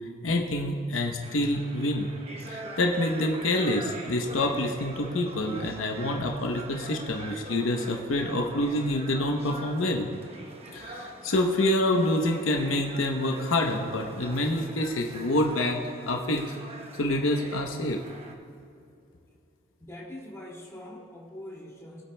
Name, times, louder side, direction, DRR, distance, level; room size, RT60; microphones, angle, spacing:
voice 1, 0.2-2.1 2.5-10.1 10.7-16.5 17.0-18.0, left 1 dB, 80° left, 2 dB, 0.8 m, -27 dB
sound 1, 1.2-18.3, right 2 dB, 30° right, 0.8 m, -43 dB
voice 2, 19.8-22.0, left 1 dB, 15° left, -5 dB, 2.2 m, -43 dB
20.0 x 8.6 x 2.2 m, 2.6 s
head